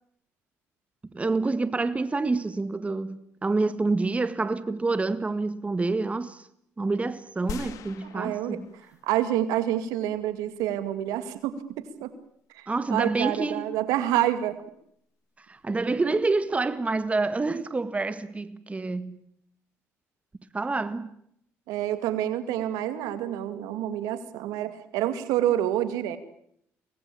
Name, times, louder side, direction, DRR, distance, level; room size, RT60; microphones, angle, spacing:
voice 1, 1.1-6.5 6.8-8.7 12.7-13.7 15.5-19.2 20.5-21.1, right 3 dB, 20° right, 1.8 m, -27 dB
sound 1, 7.5-9.2 9.8-9.9, left 7 dB, 70° left, 2.2 m, -41 dB
voice 2, 8.1-8.6 9.0-11.6 12.0-12.1 12.5-14.6 21.7-26.2, right 12 dB, 90° right, 2.2 m, -28 dB
24.5 x 19.0 x 8.5 m
supercardioid pair, 80°, 6 cm